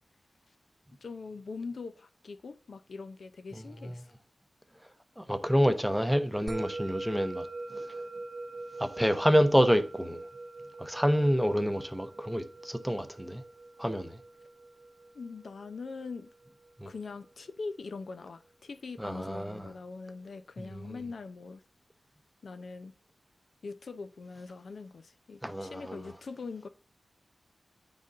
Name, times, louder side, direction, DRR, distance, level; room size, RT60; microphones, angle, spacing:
voice 1, 1.0-4.1 15.1-16.3 16.9-21.6 22.4-22.9 23.6-26.7, left 4 dB, 75° left, 0.6 m, -42 dB
voice 2, 5.2-7.5 7.7-7.9 8.8-10.2 10.8-13.4 13.8-14.2 16.8-16.9 19.0-19.7 20.6-21.0 25.4-26.0, equal, ahead, 0.7 m, -28 dB
Musical instrument, 6.5-17.1, right 2 dB, 55° right, 0.4 m, -43 dB
8.9 x 4.0 x 3.7 m
cardioid pair, 60°, 0 cm